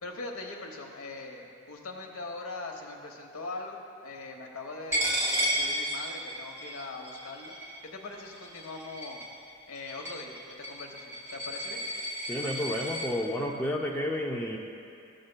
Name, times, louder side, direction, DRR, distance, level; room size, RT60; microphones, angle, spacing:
voice 1, 0.0-7.6 7.8-9.2 9.7-11.8, left 3 dB, 75° left, 2 dB, 0.9 m, -41 dB
Coin (dropping), 4.9-13.1, equal, 10° right, 1.4 m, -33 dB
voice 2, 12.3-14.6, left 1 dB, 10° left, -2 dB, 0.4 m, -31 dB
14.0 x 6.4 x 2.2 m, 2.6 s
head